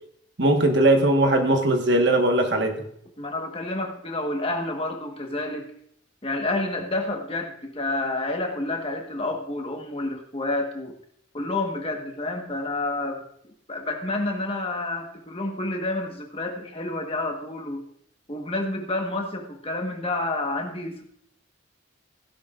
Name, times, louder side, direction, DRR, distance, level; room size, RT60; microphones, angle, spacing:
voice 1, 0.4-2.9, right 1 dB, 55° right, 4 dB, 1.5 m, -20 dB
voice 2, 3.2-5.7 6.2-11.0 11.3-17.8 18.3-21.0, left 2 dB, 30° left, 3 dB, 1.4 m, -29 dB
16.0 x 11.0 x 2.5 m, 0.68 s
head